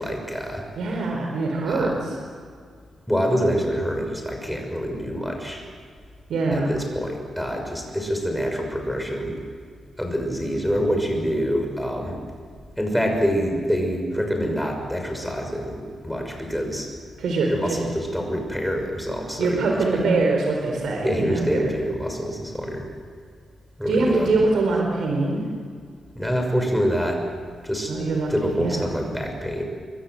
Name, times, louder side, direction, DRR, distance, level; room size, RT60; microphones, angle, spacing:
voice 1, 0.0-0.6 1.7-2.1 3.1-5.6 6.5-9.4 10.0-12.2 12.8-16.9 17.5-20.0 21.0-22.9 23.8-24.3 26.1-27.2 27.6-27.9 28.3-29.6, equal, ahead, 3 dB, 6.2 m, -26 dB
voice 2, 0.8-2.1 6.3-6.7 17.2-17.8 19.4-21.7 23.9-25.4 27.9-28.8, right 3 dB, 85° right, 0 dB, 4.6 m, -23 dB
28.5 x 24.5 x 7.9 m, 2.1 s
wide cardioid pair, 135°, 0 cm